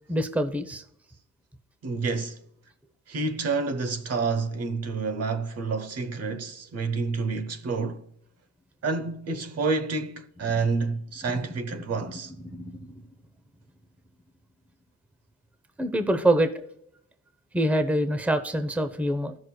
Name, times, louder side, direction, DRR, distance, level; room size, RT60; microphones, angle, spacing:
voice 1, 0.1-0.8 12.4-12.8 15.8-16.5 17.5-19.4, right 1 dB, 5° right, 0.7 m, -25 dB
voice 2, 1.8-2.4 3.1-8.1 8.8-12.3, right 4 dB, 55° right, 1.0 m, -29 dB
15.5 x 6.3 x 2.3 m
cardioid pair, 90°, 30 cm